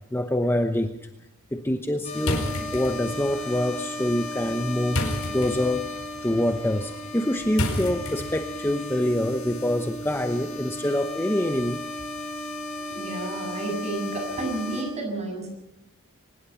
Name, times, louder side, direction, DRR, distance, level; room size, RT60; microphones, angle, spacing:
voice 1, 0.1-0.9 1.5-2.4 2.7-5.0 5.3-5.9 6.2-11.8, left 1 dB, 10° left, 6 dB, 0.9 m, -25 dB
sound 1, 2.0-14.8, left 1 dB, 35° left, 7.5 m, -35 dB
sound 2, 2.2-8.7, left 1 dB, 80° left, 4.9 m, -33 dB
voice 2, 12.9-15.5, right 2 dB, 30° right, 4 dB, 7.2 m, -31 dB
24.0 x 20.0 x 5.7 m, 0.87 s
head